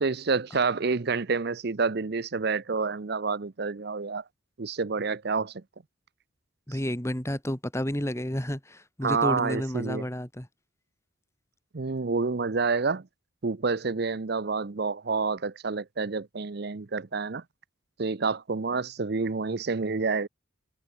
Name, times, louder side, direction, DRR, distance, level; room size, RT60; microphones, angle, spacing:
voice 1, 0.0-4.2 4.6-5.6 9.0-10.0 11.7-13.0 13.4-17.4 18.0-20.3, right 4 dB, 50° right, 0.7 m, -28 dB
voice 2, 6.7-10.5, equal, 15° left, 2.8 m, -31 dB
head